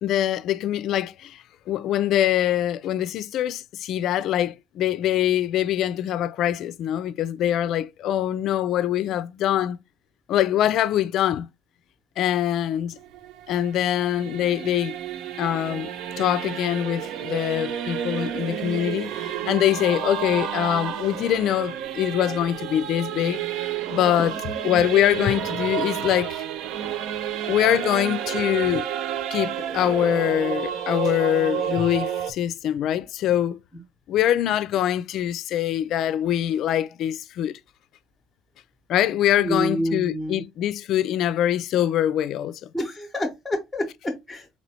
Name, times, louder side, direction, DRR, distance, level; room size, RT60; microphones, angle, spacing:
voice 1, 0.0-9.8 10.3-11.5 12.2-13.0 13.5-15.0 15.4-15.9 16.2-24.3 24.6-26.4 27.5-28.9 29.3-33.6 34.1-37.5 38.9-42.6, left 11 dB, 60° left, 0.3 m, -24 dB
Singing / Musical instrument, 12.9-32.3, right 9 dB, 70° right, 0.4 m, -30 dB
voice 2, 39.3-40.4 42.7-44.6, equal, 5° left, 0.8 m, -28 dB
4.1 x 3.0 x 2.8 m
supercardioid pair, 105°, 0 cm